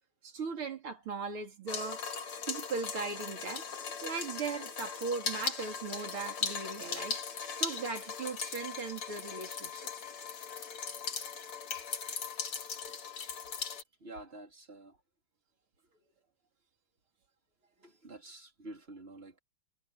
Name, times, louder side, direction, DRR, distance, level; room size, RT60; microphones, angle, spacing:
voice 1, 0.2-2.2 2.5-3.7 4.0-9.9, right 4 dB, 75° right, 4.0 m, -38 dB
sound 1, 1.7-13.8, left 6 dB, 85° left, 3.2 m, -39 dB
voice 2, 14.0-14.9 17.8-19.4, right 2 dB, 25° right, 3.4 m, -48 dB
omnidirectional pair, 2.4 m